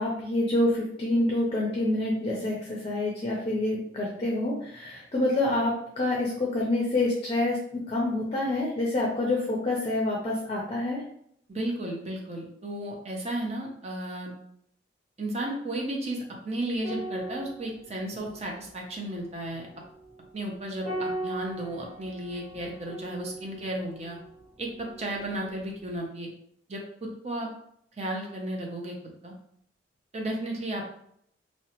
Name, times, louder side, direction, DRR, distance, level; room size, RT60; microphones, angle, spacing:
voice 1, 0.0-11.0, left 2 dB, 30° left, -2 dB, 0.5 m, -27 dB
voice 2, 11.5-14.3 15.2-19.7 20.3-24.2 24.6-26.3 26.7-27.5 28.0-28.9 29.2-29.3 30.1-31.0, right 1 dB, 35° right, 0 dB, 0.5 m, -34 dB
sound 1, 16.8-25.5 25.8-26.0, right 1 dB, 20° right, 1.4 m, -40 dB
2.8 x 2.1 x 2.8 m, 0.69 s
head